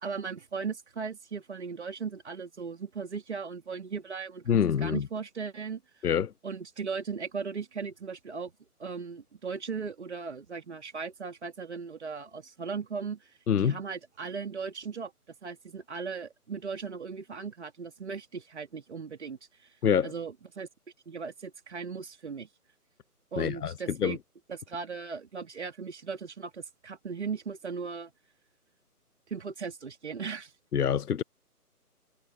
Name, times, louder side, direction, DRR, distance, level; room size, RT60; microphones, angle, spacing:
voice 1, 0.0-5.8 6.4-8.5 8.8-13.3 13.6-15.1 15.4-19.4 20.0-20.7 21.1-22.5 23.3-24.2 24.5-28.1 29.3-30.5, right 5 dB, 45° right, 3.0 m, -37 dB
voice 2, 4.5-5.1 6.0-6.3 13.5-13.8 19.8-20.1 23.4-24.2 30.7-31.2, left 8 dB, 75° left, 0.6 m, -26 dB
figure-of-eight pair, 150°, 46 cm